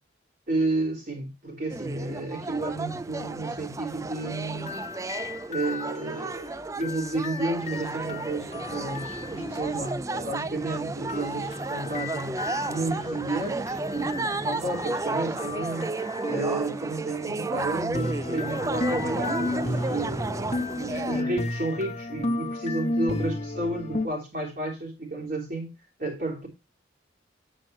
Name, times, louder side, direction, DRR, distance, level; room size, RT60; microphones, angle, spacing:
voice 1, 0.5-4.7 5.5-20.5 20.8-25.7 26.0-26.5, right 2 dB, 45° right, 3.4 m, -32 dB
sound 1, 1.7-21.2, right 2 dB, 15° right, 0.3 m, -32 dB
sound 2, 4.5-9.8 11.1-16.9 17.9-24.1, left 2 dB, 35° left, 1.0 m, -34 dB
8.9 x 7.8 x 3.1 m
head